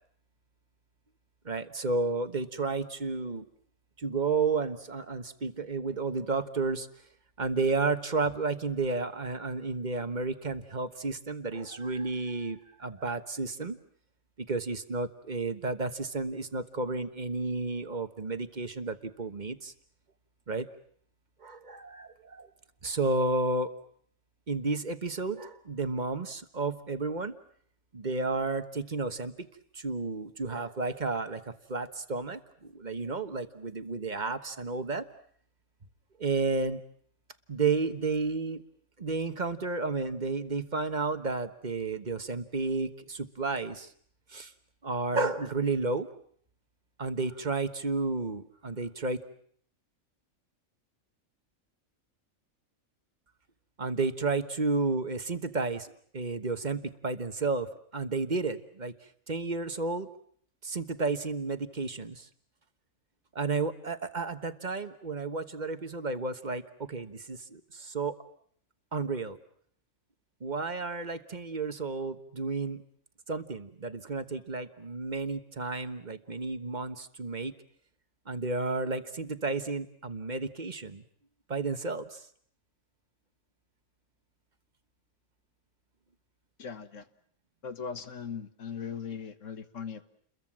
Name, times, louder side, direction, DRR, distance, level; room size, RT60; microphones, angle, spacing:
voice 1, 1.4-3.4 4.0-6.9 7.4-13.8 14.4-19.7 20.5-20.7 21.4-22.5 22.8-23.7 24.5-27.3 27.9-29.5 29.7-35.0 36.2-36.8 37.5-38.6 39.0-43.9 44.3-44.5 44.8-46.1 47.0-49.2 53.8-58.9 59.3-60.1 60.6-62.3 63.3-68.1 68.9-69.4 70.4-72.8 73.3-77.5 78.3-81.0 81.5-82.2, right 3 dB, 35° right, 10 dB, 1.3 m, -32 dB
voice 2, 86.6-87.1 87.6-90.0, left 6 dB, 65° left, 11 dB, 1.7 m, -39 dB
30.0 x 22.0 x 7.4 m, 0.62 s
omnidirectional pair, 1.4 m